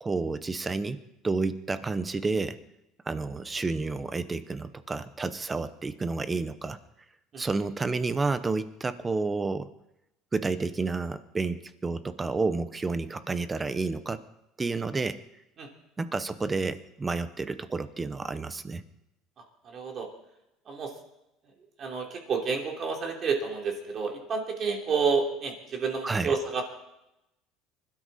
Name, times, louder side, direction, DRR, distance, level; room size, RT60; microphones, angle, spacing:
voice 1, 0.0-2.6 3.1-6.8 7.4-9.7 10.3-14.2 14.6-15.2 16.0-18.8 26.0-26.3, right 3 dB, 15° right, 12 dB, 0.8 m, -30 dB
voice 2, 19.6-20.1 20.7-20.9 21.8-26.6, right 5 dB, 30° right, 1 dB, 3.1 m, -29 dB
25.5 x 12.5 x 4.2 m, 0.89 s
cardioid pair, 160°, 0 cm